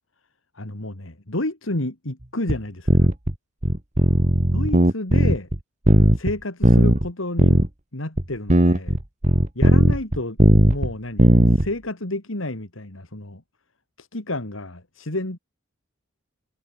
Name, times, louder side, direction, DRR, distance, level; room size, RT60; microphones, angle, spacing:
voice 1, 0.5-3.1 4.5-5.5 6.1-7.6 7.9-9.0 9.5-10.4 10.7-13.4 14.0-15.4, left 1 dB, 75° left, 3.0 m, -30 dB
sound 1, 2.5-2.6 2.9-3.3 3.6-5.6 5.9-6.3 6.6-7.1 7.4-7.7 8.2-8.3 8.5-10.9 11.2-11.7, right 1 dB, 35° right, 1.8 m, -16 dB
head